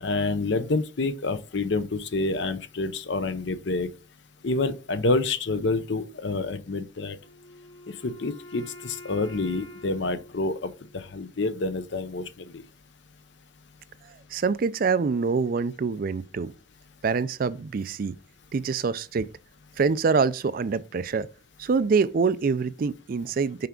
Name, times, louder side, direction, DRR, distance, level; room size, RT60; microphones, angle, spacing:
voice 1, 0.0-3.9 4.4-7.2 7.9-12.6, left 3 dB, 65° left, 0.7 m, -28 dB
Wind instrument woodwind instrument, 7.2-11.2, left 1 dB, 85° left, 2.2 m, -47 dB
voice 2, 14.3-16.5 17.0-18.2 18.5-19.3 19.8-21.3 21.6-23.7, right 5 dB, 45° right, 0.4 m, -25 dB
5.7 x 4.8 x 3.7 m
head